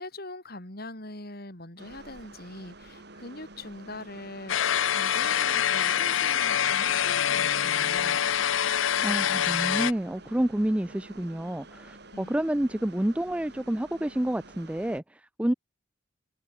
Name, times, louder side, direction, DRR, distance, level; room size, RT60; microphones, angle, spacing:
voice 1, 0.0-4.6 4.9-8.2 8.5-9.2 10.4-10.5 12.1-12.4, left 2 dB, 50° left, 5.4 m, -42 dB
sound 1, 1.8-15.0, right 2 dB, 55° right, 5.4 m, -49 dB
sound 2, 4.5-9.9, left 9 dB, 75° left, 0.6 m, -25 dB
voice 2, 9.0-15.5, right 1 dB, 5° right, 0.4 m, -29 dB
head